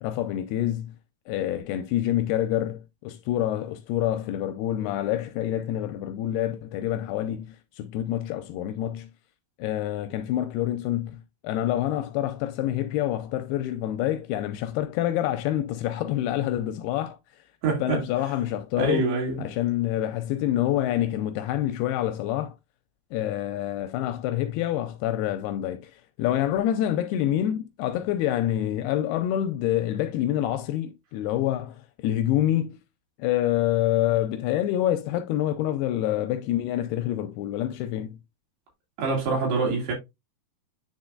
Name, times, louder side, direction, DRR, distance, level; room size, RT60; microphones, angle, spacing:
voice 1, 0.0-1.0 1.3-9.1 9.6-17.2 17.8-19.1 19.4-22.6 23.1-32.8 33.2-38.2, left 12 dB, 85° left, 2.4 m, -27 dB
voice 2, 17.6-18.0 18.8-19.4 39.0-39.9, right 3 dB, 70° right, 4.4 m, -25 dB
9.6 x 4.2 x 2.4 m
omnidirectional pair, 4.9 m